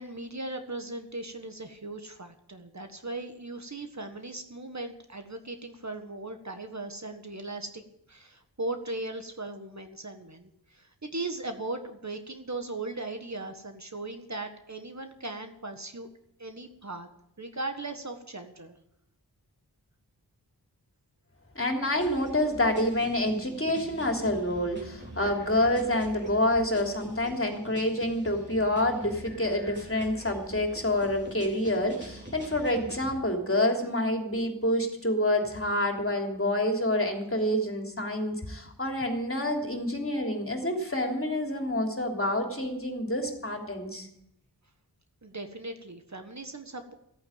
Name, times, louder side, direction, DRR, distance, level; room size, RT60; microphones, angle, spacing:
voice 1, 0.0-16.1 16.4-17.1 17.4-18.8 45.2-46.9, right 2 dB, 40° right, 6 dB, 1.6 m, -38 dB
voice 2, 21.5-44.1, left 1 dB, 30° left, 3 dB, 3.3 m, -28 dB
sound 1, 21.9-33.1, right 1 dB, 25° right, 4.5 m, -44 dB
14.5 x 8.8 x 8.8 m, 0.78 s
cardioid pair, 40°, 41 cm